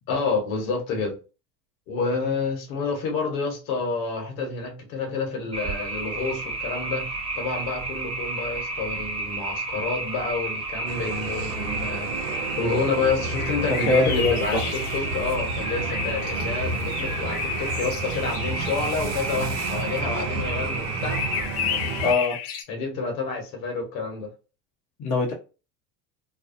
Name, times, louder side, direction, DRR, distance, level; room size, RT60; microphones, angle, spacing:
voice 1, 0.1-1.2 1.9-21.2 22.7-24.3, left 4 dB, 65° left, 1.2 m, -29 dB
sound 1, 5.5-21.5, right 2 dB, 15° right, 0.8 m, -32 dB
sound 2, 10.9-22.1, right 3 dB, 75° right, 0.7 m, -32 dB
sound 3, 13.4-18.9 21.1-22.6, left 8 dB, 85° left, 0.7 m, -33 dB
voice 2, 13.7-14.6 22.0-22.4 25.0-25.3, left 2 dB, 40° left, 0.8 m, -23 dB
2.5 x 2.2 x 2.5 m
supercardioid pair, 95°, 43 cm